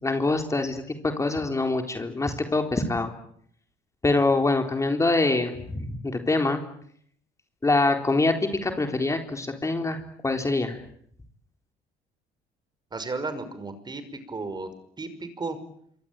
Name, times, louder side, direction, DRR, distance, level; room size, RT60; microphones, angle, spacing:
voice 1, 0.0-3.1 4.0-6.6 7.6-10.8, left 2 dB, 20° left, 5 dB, 3.9 m, -25 dB
voice 2, 12.9-14.7 15.0-15.6, right 3 dB, 25° right, 11 dB, 5.8 m, -34 dB
27.0 x 23.5 x 9.0 m, 0.68 s
cardioid pair, 110°, 17 cm